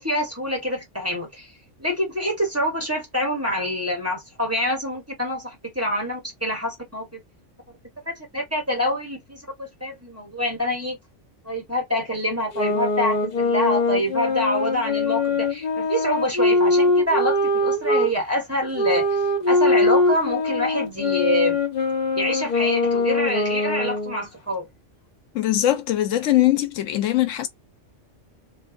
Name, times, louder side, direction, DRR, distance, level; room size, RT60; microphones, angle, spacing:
voice 1, 0.0-1.5 1.8-7.2 8.1-11.0 11.4-19.2 19.5-21.6 22.1-24.7, equal, 10° right, 1.1 m, -26 dB
sound 1, 12.5-18.1 18.7-24.2, left 2 dB, 50° left, 0.5 m, -22 dB
voice 2, 25.3-27.5, left 14 dB, 80° left, 0.9 m, -21 dB
2.4 x 2.2 x 2.4 m
omnidirectional pair, 1.3 m